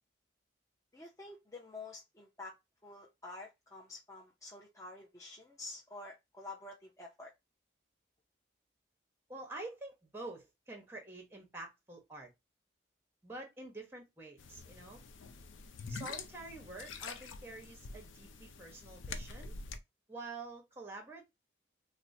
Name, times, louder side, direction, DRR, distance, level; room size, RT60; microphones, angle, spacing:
voice 1, 0.9-2.5 2.8-7.3, left 2 dB, 15° left, 0.5 m, -49 dB
voice 2, 9.3-12.3 13.2-15.0 15.9-19.5 20.1-21.2, right 2 dB, 10° right, 0.8 m, -47 dB
sound 1, 14.4-19.8, left 4 dB, 90° left, 0.5 m, -46 dB
4.2 x 2.1 x 2.6 m
head